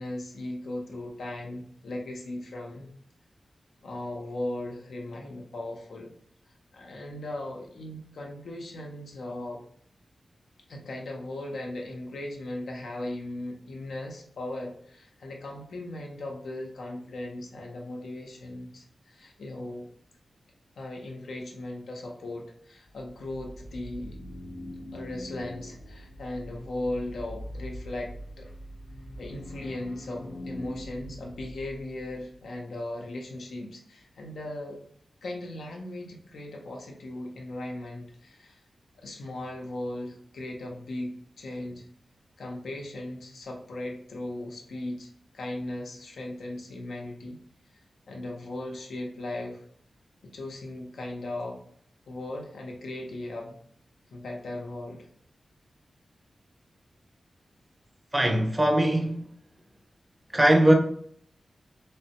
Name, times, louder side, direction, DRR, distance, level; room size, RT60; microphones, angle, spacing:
voice 1, 0.0-2.9 3.8-6.1 6.7-9.6 10.7-19.9 20.8-24.2 24.9-28.5 29.2-34.8 35.2-38.6 38.9-41.9 42.4-45.1 45.3-47.4 48.1-49.6 50.2-51.6 52.1-53.6 54.1-55.1, left 1 dB, 85° left, 0.8 m, -37 dB
sound 1, 22.9-32.2, equal, 50° left, 0.6 m, -42 dB
voice 2, 58.1-59.2 60.3-60.7, right 1 dB, 15° right, 0.5 m, -20 dB
3.4 x 3.2 x 2.9 m
wide cardioid pair, 165°, 0 cm